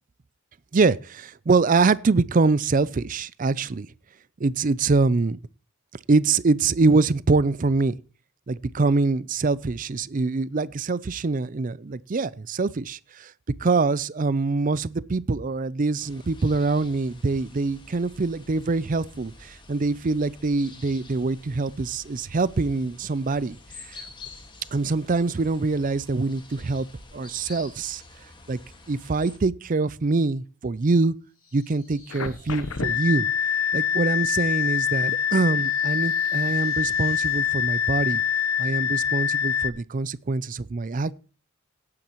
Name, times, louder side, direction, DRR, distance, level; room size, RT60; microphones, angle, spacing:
voice 1, 0.7-3.9 4.4-5.4 6.1-7.9 8.5-13.3 13.6-24.0 24.7-26.9 27.1-28.0 28.5-28.6 28.9-31.1 31.5-33.3 33.7-38.2 38.6-41.1, right 3 dB, 40° right, 0.5 m, -24 dB
sound 1, 16.0-29.4, left 3 dB, 20° left, 1.8 m, -48 dB
sound 2, 31.3-37.6, left 2 dB, 40° left, 7.5 m, -54 dB
sound 3, 32.1-39.7, left 8 dB, 75° left, 1.0 m, -25 dB
17.5 x 9.7 x 3.0 m
head